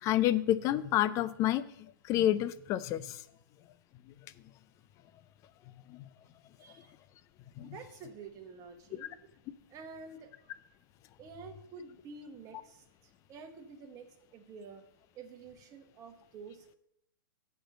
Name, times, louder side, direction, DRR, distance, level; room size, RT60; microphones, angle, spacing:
voice 1, 0.0-3.2 5.9-6.1 7.6-7.8, left 13 dB, 25° left, 15 dB, 0.4 m, -29 dB
voice 2, 7.6-9.2 9.7-10.5 11.2-14.8 15.1-16.8, right 4 dB, 30° right, 6 dB, 1.0 m, -49 dB
7.7 x 4.4 x 6.4 m, 0.78 s
hypercardioid pair, 130°, 12 cm